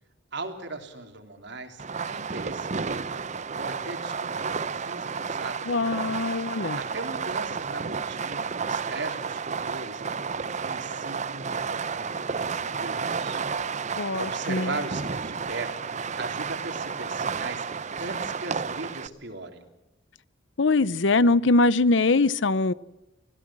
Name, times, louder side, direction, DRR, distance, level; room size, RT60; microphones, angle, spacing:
voice 1, 0.3-3.2 3.6-5.7 6.8-10.0 10.3-13.4 14.2-15.7 16.1-17.7 18.0-19.7, right 2 dB, 60° right, 5 dB, 3.4 m, -38 dB
Fireworks, 1.8-19.1, right 5 dB, 35° right, 0.7 m, -31 dB
voice 2, 5.7-6.8 14.0-14.7 20.6-22.7, left 3 dB, 65° left, 19 dB, 0.7 m, -22 dB
24.5 x 17.0 x 7.5 m, 0.98 s
head